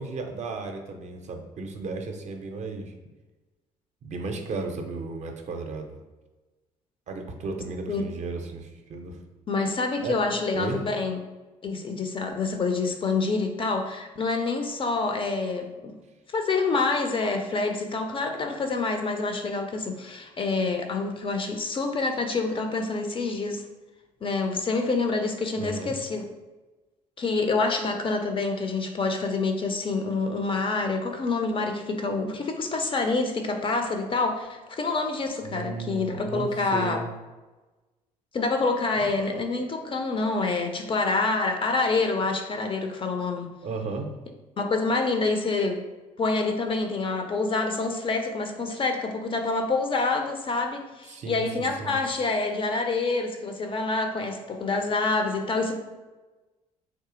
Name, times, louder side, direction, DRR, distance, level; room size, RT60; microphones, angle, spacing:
voice 1, 0.0-2.9 4.0-5.9 7.1-9.2 10.0-10.2 10.5-10.8 25.6-26.0 35.4-37.1 39.0-39.1 43.6-44.1 51.1-52.0, right 3 dB, 40° right, 4 dB, 0.5 m, -34 dB
voice 2, 9.5-11.2 11.6-15.9 16.3-23.7 24.2-26.3 27.2-37.0 38.3-43.5 44.6-45.8 46.2-55.8, left 3 dB, 30° left, 5 dB, 0.4 m, -27 dB
3.7 x 2.6 x 2.4 m, 1.2 s
figure-of-eight pair, 50°, 19 cm